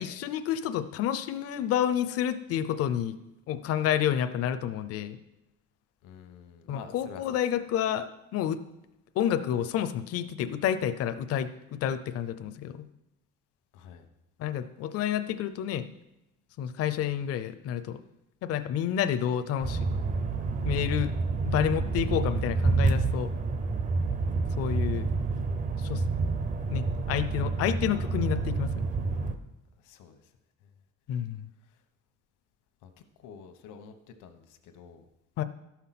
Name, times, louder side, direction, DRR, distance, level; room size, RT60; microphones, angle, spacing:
voice 1, 0.0-3.1 3.5-5.2 6.7-8.6 9.2-12.8 14.4-15.8 16.6-18.0 18.4-19.8 20.6-21.1 21.4-23.3 24.6-25.1 25.8-26.0 26.7-28.7 31.1-31.4 35.4-35.5, left 10 dB, 50° left, 10 dB, 0.6 m, -29 dB
voice 2, 6.0-7.4 13.7-14.1 27.9-28.3 29.8-30.3 30.6-30.7 31.6-31.8 32.8-32.9 33.2-35.0, left 7 dB, 80° left, 8 dB, 1.2 m, -49 dB
sound 1, 19.6-29.3, right 3 dB, 25° right, 0.6 m, -28 dB
12.5 x 5.8 x 5.9 m, 0.91 s
cardioid pair, 165°, 30 cm